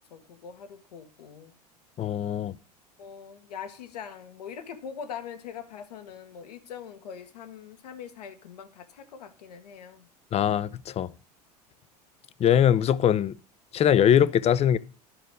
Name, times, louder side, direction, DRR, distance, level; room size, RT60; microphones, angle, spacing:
voice 1, 0.1-1.5 3.0-10.1, left 7 dB, 75° left, 1.4 m, -42 dB
voice 2, 2.0-2.5 10.3-11.1 12.4-13.3 13.7-14.8, left 9 dB, 30° left, 0.6 m, -22 dB
11.5 x 5.3 x 6.4 m
hypercardioid pair, 85°, 21 cm